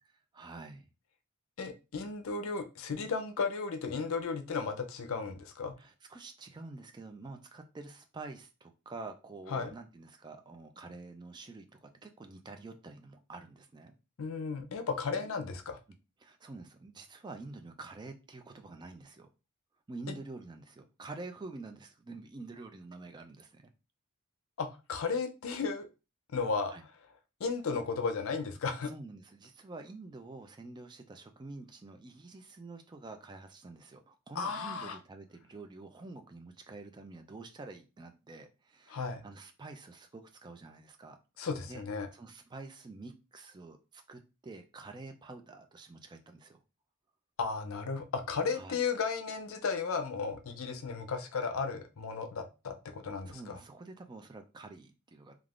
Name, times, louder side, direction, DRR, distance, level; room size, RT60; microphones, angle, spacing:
voice 1, 0.3-0.9 5.8-13.9 16.2-19.3 19.9-23.7 26.6-26.8 28.8-41.2 41.7-41.8 42.1-46.6 48.5-48.8 53.3-55.4, right 3 dB, 20° right, 0.3 m, -48 dB
voice 2, 1.6-5.7 9.5-9.7 14.2-15.8 24.6-25.9 26.3-26.9 27.4-28.9 34.4-35.0 38.9-39.2 41.4-42.1 47.4-53.6, left 5 dB, 70° left, 0.5 m, -34 dB
3.4 x 2.4 x 2.4 m
head